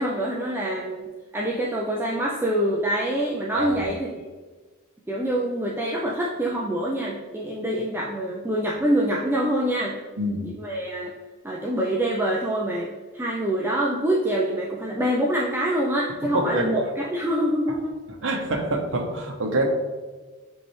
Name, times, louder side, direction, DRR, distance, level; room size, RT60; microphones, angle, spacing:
voice 1, 0.0-4.1 5.1-10.0 10.4-11.1 11.4-17.9, right 1 dB, 10° right, -3 dB, 0.5 m, -25 dB
voice 2, 16.3-16.9 18.2-19.7, right 1 dB, 65° right, 3 dB, 0.9 m, -25 dB
9.4 x 3.3 x 3.1 m, 1.3 s
head